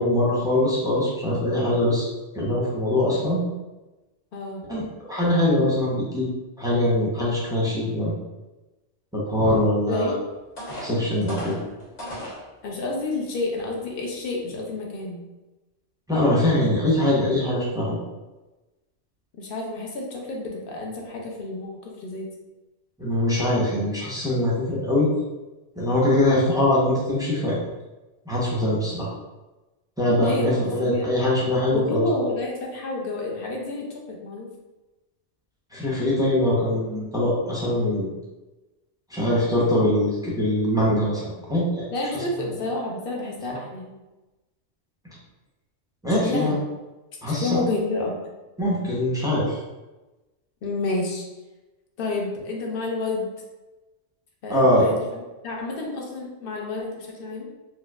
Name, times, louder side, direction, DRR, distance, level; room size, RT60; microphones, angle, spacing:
voice 1, 0.0-2.1 2.3-3.4 4.7-4.8 5.1-6.3 6.6-8.1 9.1-10.1 10.8-11.6 16.1-17.9 23.0-25.1 25.8-27.6 28.3-29.1 30.0-32.1 35.7-38.1 39.1-41.9 46.0-46.6 47.2-47.6 48.6-49.6 54.5-54.8, left 1 dB, 5° right, -7 dB, 0.6 m, -22 dB
voice 2, 4.3-4.7 9.8-10.2 12.6-15.3 19.4-22.3 30.2-31.1 31.7-34.5 41.9-43.9 46.1-46.6 47.3-48.2 50.6-51.2 52.0-53.3 54.4-57.5, left 2 dB, 55° left, -1 dB, 0.8 m, -30 dB
sound 1, 10.6-12.4 13.1-13.2 13.7-13.9, equal, 75° left, 1.7 m, -36 dB
4.5 x 2.2 x 2.3 m, 1.1 s
omnidirectional pair, 1.2 m